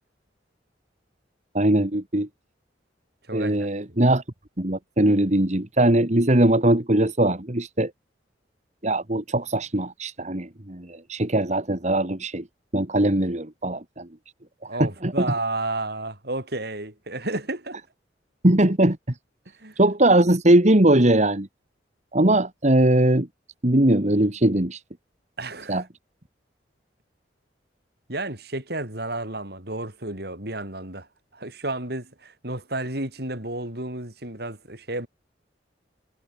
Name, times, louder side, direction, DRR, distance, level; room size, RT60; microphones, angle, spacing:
voice 1, 1.5-2.3 3.3-4.2 4.6-7.9 8.8-12.4 12.7-14.1 14.8-15.3 18.4-19.2 19.8-21.5 22.1-23.3 23.6-24.8 25.7-25.8, right 1 dB, 40° right, 2.0 m, -20 dB
voice 2, 3.3-3.7 14.7-17.8 19.6-19.8 25.4-25.8 28.1-31.1 31.3-35.1, right 2 dB, 60° right, 6.7 m, -32 dB
head